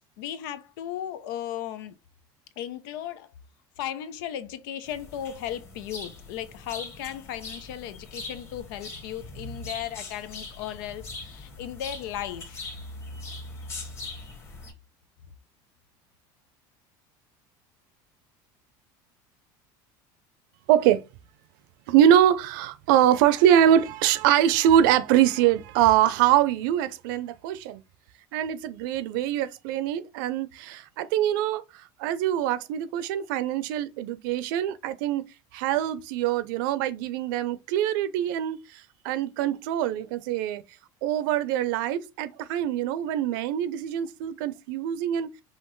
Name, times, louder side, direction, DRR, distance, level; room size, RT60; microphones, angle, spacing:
voice 1, 0.2-1.9 2.6-3.3 3.8-12.7, left 11 dB, 90° left, 0.7 m, -36 dB
sound 1, 4.8-14.7, left 2 dB, 25° left, 1.3 m, -41 dB
voice 2, 20.7-21.0 21.9-27.8 28.3-31.6 32.0-35.2 35.5-38.6 39.0-40.6 41.0-45.3, right 11 dB, 80° right, 0.6 m, -23 dB
5.7 x 2.5 x 3.1 m
cardioid pair, 160°, 11 cm